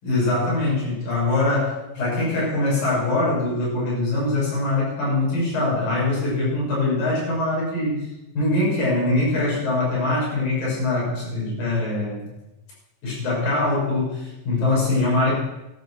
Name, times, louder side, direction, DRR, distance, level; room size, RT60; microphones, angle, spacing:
voice 1, 0.0-8.1 8.4-12.3 13.0-15.3, left 2 dB, 85° left, -6 dB, 7.7 m, -23 dB
13.5 x 11.0 x 6.4 m, 0.93 s
omnidirectional pair, 3.9 m